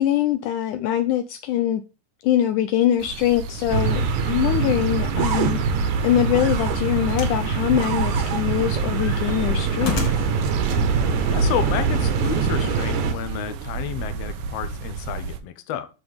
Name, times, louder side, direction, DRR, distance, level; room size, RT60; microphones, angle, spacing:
voice 1, 0.0-1.8 2.2-10.3, left 11 dB, 75° left, 2.0 m, -23 dB
sound 1, 3.0-15.4, right 5 dB, 80° right, 2.7 m, -32 dB
sound 2, 3.7-13.1, right 5 dB, 65° right, 2.7 m, -23 dB
sound 3, 7.1-7.5 7.8-8.5 8.9-10.4 11.3-11.4, left 2 dB, 45° left, 3.2 m, -30 dB
voice 2, 10.0-10.3 10.8-15.9, left 9 dB, 60° left, 1.9 m, -31 dB
9.6 x 6.4 x 3.5 m
omnidirectional pair, 3.8 m